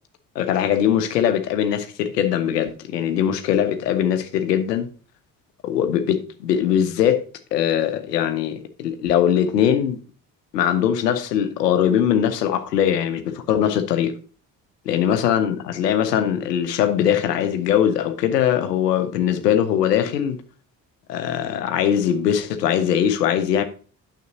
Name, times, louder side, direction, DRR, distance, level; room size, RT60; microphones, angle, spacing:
voice 1, 0.3-4.9 5.6-7.2 7.5-10.0 10.5-14.1 14.9-20.4 21.1-23.6, left 9 dB, 85° left, 0.8 m, -21 dB
9.3 x 6.8 x 2.7 m
figure-of-eight pair, 45°, 47 cm